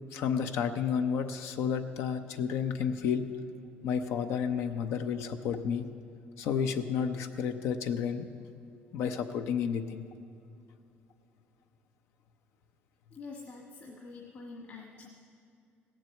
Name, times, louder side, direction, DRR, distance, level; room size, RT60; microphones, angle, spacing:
voice 1, 0.1-3.3 3.8-5.9 6.4-8.3 8.9-10.0, left 7 dB, 80° left, 7 dB, 0.7 m, -31 dB
voice 2, 13.1-15.1, left 4 dB, 50° left, -1 dB, 1.6 m, -46 dB
17.0 x 7.5 x 7.9 m, 2.5 s
cardioid pair, 135°, 4 cm